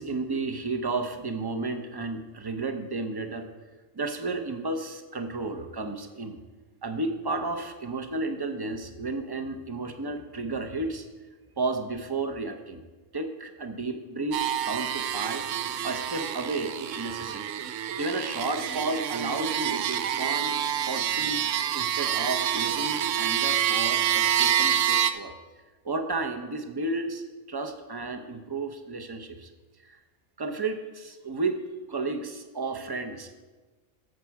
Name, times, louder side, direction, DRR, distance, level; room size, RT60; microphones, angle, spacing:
voice 1, 0.0-3.5 3.9-6.4 6.8-11.1 11.6-12.8 13.1-15.5 15.8-17.4 18.0-21.4 21.7-25.3 25.8-29.5 29.8-30.0 30.4-31.6 31.9-33.3, right 3 dB, 25° right, 7 dB, 0.5 m, -32 dB
sound 1, 14.3-25.1, right 10 dB, 70° right, 0.9 m, -27 dB
13.0 x 7.3 x 4.7 m, 1.3 s
omnidirectional pair, 1.4 m